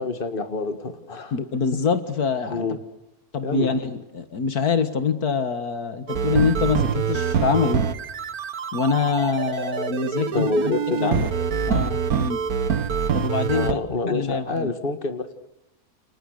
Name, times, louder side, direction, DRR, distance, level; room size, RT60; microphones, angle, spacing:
voice 1, 0.0-1.4 2.5-2.8 3.4-3.7 10.3-11.3 13.5-15.3, left 3 dB, 35° left, 8 dB, 2.2 m, -27 dB
voice 2, 1.3-2.7 3.3-7.9 8.7-10.7 11.0-11.3 11.7-12.4 13.1-13.8 14.1-14.7, left 6 dB, 70° left, 10 dB, 2.1 m, -25 dB
sound 1, 6.1-13.7, right 7 dB, 70° right, 1.7 m, -25 dB
29.5 x 29.0 x 6.6 m, 0.89 s
omnidirectional pair, 1.6 m